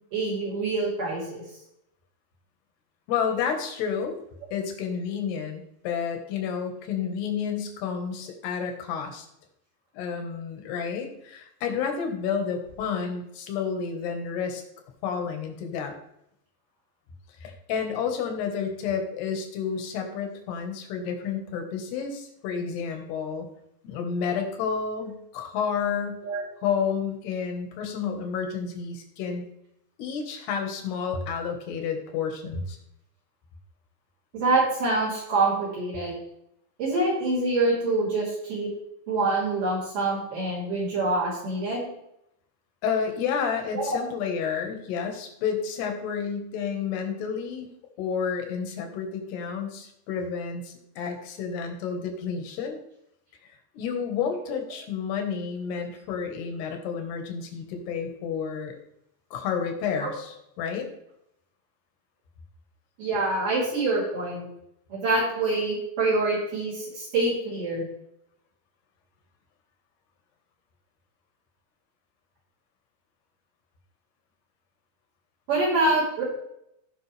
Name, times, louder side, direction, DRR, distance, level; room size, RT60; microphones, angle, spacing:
voice 1, 0.1-1.4 26.2-26.4 34.3-36.2 36.8-38.7 39.1-41.9 43.7-44.0 54.5-54.6 60.0-60.1 63.0-64.4 64.9-67.9 75.5-76.2, right 2 dB, 55° right, -9 dB, 5.2 m, -25 dB
voice 2, 3.1-4.2 4.5-9.3 9.9-14.6 15.0-15.9 17.4-23.5 23.8-26.2 26.6-29.4 30.0-32.8 42.8-47.7 48.0-52.8 53.7-58.8 59.3-60.9, left 6 dB, 75° left, 4 dB, 3.5 m, -30 dB
17.0 x 5.8 x 3.4 m, 0.78 s
omnidirectional pair, 4.8 m